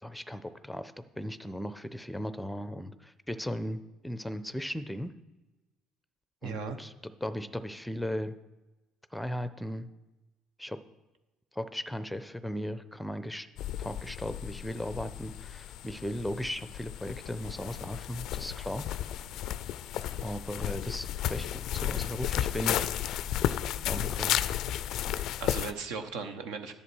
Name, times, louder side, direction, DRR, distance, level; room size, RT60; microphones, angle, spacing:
voice 1, 0.0-5.1 6.4-8.4 9.1-9.9 10.6-10.8 11.5-13.5 13.8-19.1 20.2-22.9 23.8-24.4, equal, 5° left, 13 dB, 0.6 m, -37 dB
voice 2, 6.4-6.8 25.1-26.7, right 5 dB, 65° right, 7 dB, 0.9 m, -38 dB
sound 1, 13.6-25.7, left 11 dB, 60° left, 0.4 m, -33 dB
11.0 x 6.9 x 4.6 m, 1.1 s
hypercardioid pair, 55°, 0 cm